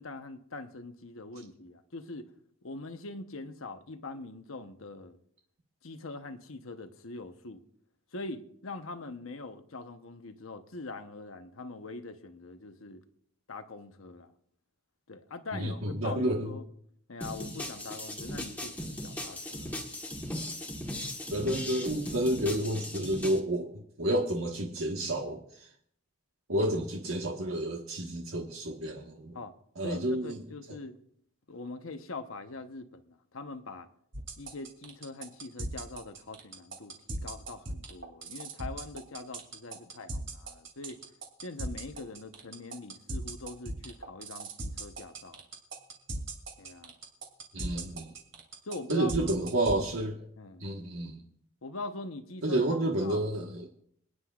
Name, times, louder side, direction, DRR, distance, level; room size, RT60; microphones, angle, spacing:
voice 1, 0.0-2.3 2.6-5.2 5.8-7.6 8.1-13.0 13.5-14.3 15.1-16.6 17.1-19.8 29.3-29.5 29.8-31.0 31.5-33.9 34.4-41.0 41.4-45.4 46.6-46.9 48.6-49.3 50.4-50.7 51.6-52.6 53.0-53.3, left 3 dB, 80° left, 1.0 m, -43 dB
voice 2, 15.5-16.5 21.3-25.7 26.5-29.4 29.8-30.4 47.5-48.1 48.9-50.3 50.6-51.2 52.4-53.7, right 1 dB, 85° right, 1.5 m, -30 dB
sound 1, 17.2-23.4, left 1 dB, 10° left, 1.4 m, -38 dB
sound 2, 34.1-49.8, right 2 dB, 60° right, 2.7 m, -37 dB
26.5 x 9.8 x 2.5 m
head